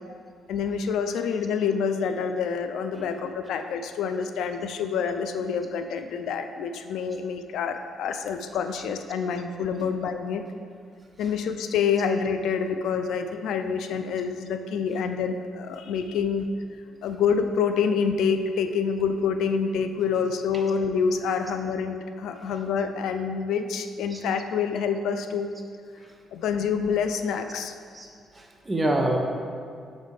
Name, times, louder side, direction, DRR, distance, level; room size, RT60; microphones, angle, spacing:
voice 1, 0.5-10.4 11.2-16.5 17.0-25.5 26.3-27.7, left 6 dB, 80° left, 8 dB, 0.3 m, -27 dB
voice 2, 28.3-29.2, right 1 dB, 15° right, 0 dB, 0.9 m, -27 dB
6.3 x 4.1 x 4.8 m, 2.2 s
cardioid pair, 90°, 0 cm